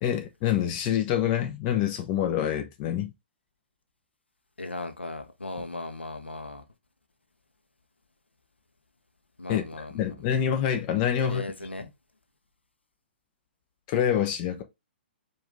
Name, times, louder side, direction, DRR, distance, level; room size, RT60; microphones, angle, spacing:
voice 1, 0.0-3.1 9.5-9.6 9.9-11.4 13.9-14.6, left 9 dB, 30° left, 0.8 m, -26 dB
voice 2, 4.6-6.6 9.4-10.4 11.2-11.9, left 2 dB, 80° left, 0.8 m, -37 dB
4.9 x 2.6 x 3.5 m
figure-of-eight pair, 120°, 6 cm